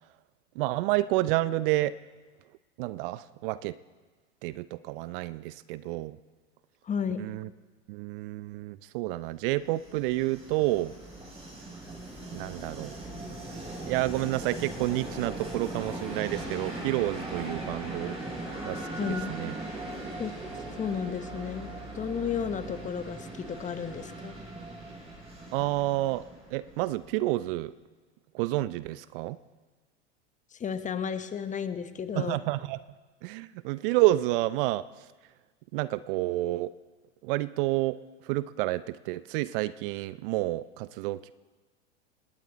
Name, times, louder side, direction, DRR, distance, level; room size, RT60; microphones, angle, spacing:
voice 1, 0.6-1.9 2.8-3.8 4.4-6.2 7.2-7.5 7.9-10.9 12.3-12.9 13.9-18.2 18.6-19.5 25.5-26.3 26.5-27.7 28.3-29.4 32.2-32.8 33.2-34.9 35.7-36.7 37.2-38.0 38.2-41.3, right 17 dB, 50° right, 17 dB, 0.6 m, -29 dB
voice 2, 6.8-7.3 19.0-19.3 20.2-24.3 30.5-32.4, left 7 dB, 20° left, 11 dB, 1.1 m, -33 dB
Train, 9.6-27.2, right 2 dB, 15° right, 6.3 m, -39 dB
19.0 x 18.5 x 4.0 m, 1.3 s
hypercardioid pair, 95°, 35 cm